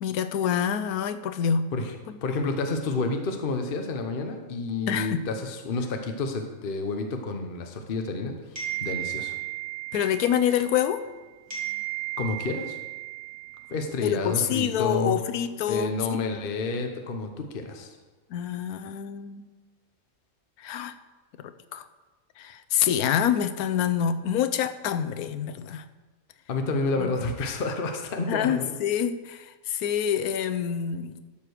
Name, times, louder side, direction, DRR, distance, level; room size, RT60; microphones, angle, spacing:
voice 1, 0.0-1.7 4.9-5.3 9.9-11.0 14.0-16.2 18.3-19.5 20.6-20.9 21.4-21.9 22.4-25.9 26.9-27.1 28.3-31.2, left 9 dB, 90° left, 11 dB, 1.1 m, -27 dB
voice 2, 2.2-8.3 8.8-9.3 12.2-12.8 13.7-15.2 15.7-18.0 26.5-28.7, left 3 dB, 45° left, 4 dB, 1.0 m, -29 dB
sound 1, 8.6-11.2 11.5-14.1, right 15 dB, 20° right, 2.6 m, -35 dB
12.5 x 5.0 x 6.3 m, 1.3 s
omnidirectional pair, 1.5 m